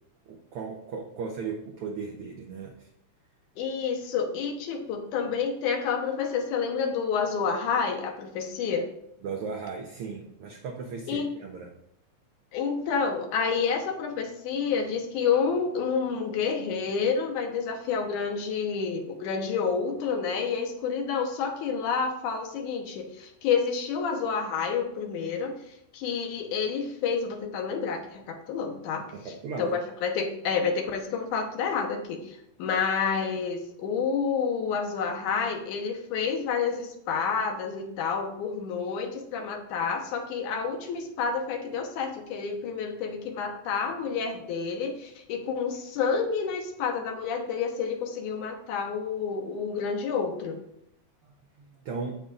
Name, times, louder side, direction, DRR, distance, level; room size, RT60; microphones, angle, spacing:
voice 1, 0.2-2.9 9.2-11.7 29.1-29.8 51.2-52.2, right 5 dB, 65° right, 0 dB, 1.5 m, -37 dB
voice 2, 3.6-8.9 11.1-11.3 12.5-25.6 25.9-29.1 29.6-50.6, left 6 dB, 85° left, 4 dB, 2.5 m, -29 dB
15.5 x 5.8 x 2.5 m, 0.76 s
omnidirectional pair, 3.5 m